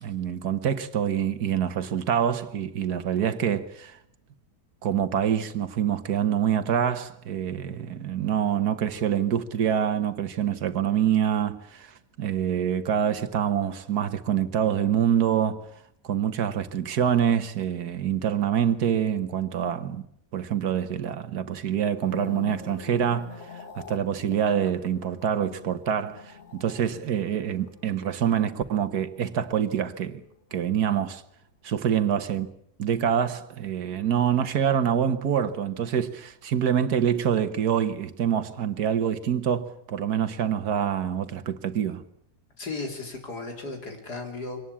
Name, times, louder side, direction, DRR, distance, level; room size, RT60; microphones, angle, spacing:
voice 1, 0.0-4.0 4.8-15.7 16.0-20.0 20.3-30.2 30.5-31.2 31.6-32.5 32.8-42.0, right 9 dB, 70° right, 1.7 m, -26 dB
sound 1, 21.8-30.2 30.5-30.9, left 6 dB, 45° left, 1.5 m, -45 dB
voice 2, 42.6-44.6, left 3 dB, 70° left, 4.4 m, -35 dB
24.5 x 19.0 x 8.5 m
omnidirectional pair, 1.8 m